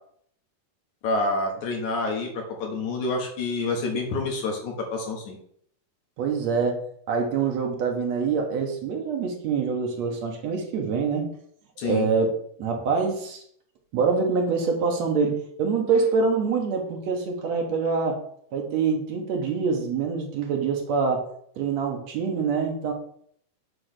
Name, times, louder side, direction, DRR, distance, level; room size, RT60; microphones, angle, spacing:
voice 1, 1.0-5.4 11.8-12.1, left 3 dB, 65° left, 1 dB, 2.7 m, -28 dB
voice 2, 6.2-6.8 7.1-11.3 11.8-13.4 13.9-18.2 18.5-21.3 21.6-22.9, right 5 dB, 65° right, 2 dB, 2.1 m, -25 dB
8.0 x 3.4 x 6.5 m, 0.64 s
omnidirectional pair, 3.8 m